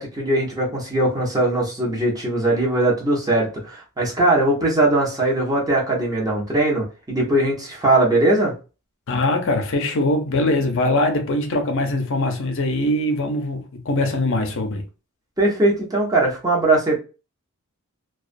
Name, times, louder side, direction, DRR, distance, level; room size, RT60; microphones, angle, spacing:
voice 1, 0.0-8.5 15.4-17.0, right 2 dB, 15° right, 0.8 m, -20 dB
voice 2, 9.1-14.8, left 1 dB, 60° left, 0.6 m, -22 dB
2.3 x 2.3 x 2.5 m
head